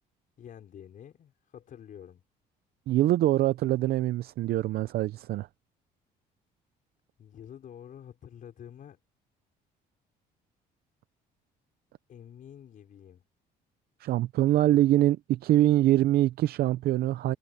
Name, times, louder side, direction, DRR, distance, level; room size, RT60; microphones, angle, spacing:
voice 1, 0.4-2.2 7.2-9.0 12.1-13.2, left 9 dB, 55° left, 5.4 m, -48 dB
voice 2, 2.9-5.5 14.0-17.4, right 14 dB, 65° right, 0.6 m, -24 dB
cardioid pair, 110°, 17 cm